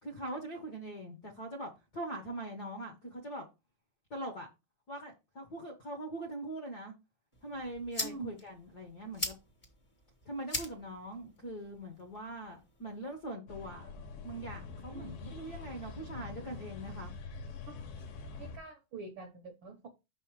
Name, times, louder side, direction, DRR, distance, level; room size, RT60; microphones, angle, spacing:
voice 1, 0.0-3.5 4.1-4.5 4.9-6.9 7.4-9.3 10.2-17.1, right 1 dB, 55° left, 1.1 m, -42 dB
sound 1, 7.3-13.3, left 2 dB, 35° left, 0.7 m, -43 dB
voice 2, 8.0-8.4 14.9-15.1 17.7-17.8 18.2-19.9, right 3 dB, 65° right, 1.2 m, -45 dB
sound 2, 13.5-18.6, left 4 dB, 85° left, 2.8 m, -45 dB
5.8 x 5.5 x 4.6 m
omnidirectional pair, 3.5 m